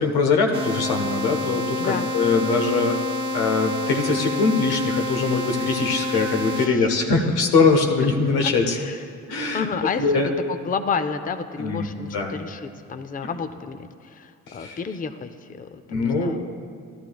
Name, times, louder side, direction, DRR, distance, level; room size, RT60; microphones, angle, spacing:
voice 1, 0.0-3.0 3.3-8.8 9.3-9.7 10.0-10.3 11.6-12.3 14.5-14.8 15.9-16.4, left 4 dB, 85° left, 3 dB, 1.0 m, -22 dB
sound 1, 0.5-6.7, left 2 dB, 15° right, 1.3 m, -28 dB
voice 2, 6.5-6.9 8.7-9.0 9.5-10.1 10.5-16.4, left 5 dB, 25° left, 9 dB, 0.5 m, -31 dB
13.5 x 11.5 x 2.3 m, 2.2 s
supercardioid pair, 55°, 37 cm